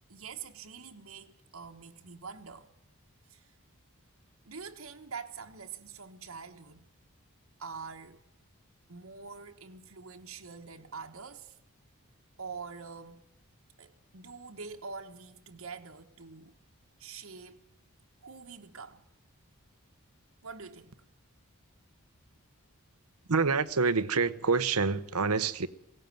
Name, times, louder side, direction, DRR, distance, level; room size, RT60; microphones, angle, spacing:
voice 1, 0.1-2.7 3.3-3.4 4.4-6.9 7.6-8.2 8.9-11.5 12.4-13.3 13.8-16.5 17.0-17.6 18.2-19.0 20.4-20.9, right 5 dB, 70° right, 1.4 m, -45 dB
voice 2, 23.3-25.7, right 4 dB, 90° right, 1.0 m, -27 dB
18.0 x 17.0 x 9.1 m
head